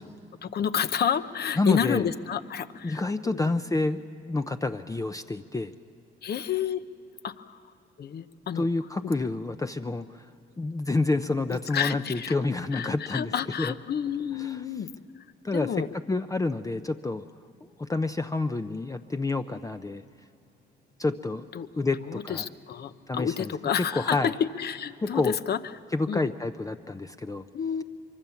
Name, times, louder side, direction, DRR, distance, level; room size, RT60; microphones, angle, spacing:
voice 1, 0.4-3.5 6.2-6.8 7.2-7.6 8.0-8.7 9.0-9.1 11.5-12.3 12.7-14.9 15.5-15.9 21.5-21.7 22.0-24.3 24.6-25.6 26.1-26.3 27.5-27.8, left 8 dB, 55° left, 12 dB, 0.9 m, -30 dB
voice 2, 1.6-2.1 2.8-5.7 8.6-10.1 10.6-13.3 13.6-13.7 14.4-14.6 15.4-15.7 16.1-17.3 17.8-20.0 21.0-21.5 21.8-22.5 23.1-23.5 23.9-24.3 25.0-25.3 25.9-27.4, left 3 dB, 15° left, 8 dB, 0.6 m, -28 dB
24.0 x 24.0 x 7.1 m, 2.7 s
cardioid pair, 90°, 20 cm